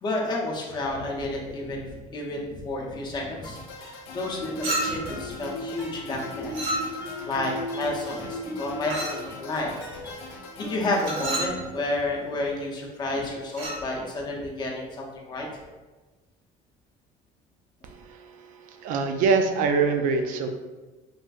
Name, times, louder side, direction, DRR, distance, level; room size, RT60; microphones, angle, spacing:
voice 1, 0.0-6.5 7.3-9.7 10.6-15.5, left 2 dB, 30° left, -1 dB, 0.6 m, -31 dB
sound 1, 3.4-11.4, left 3 dB, 90° left, 0.5 m, -43 dB
Guitar, 4.3-12.0, equal, 20° right, 0.6 m, -37 dB
Chink clink, 4.6-5.2 6.5-7.2 8.9-9.3 11.0-11.6 13.5-13.8, right 1 dB, 85° right, 0.9 m, -30 dB
voice 2, 17.8-20.5, right 4 dB, 65° right, 6 dB, 0.4 m, -25 dB
3.1 x 2.5 x 2.3 m, 1.2 s
cardioid pair, 140°, 15 cm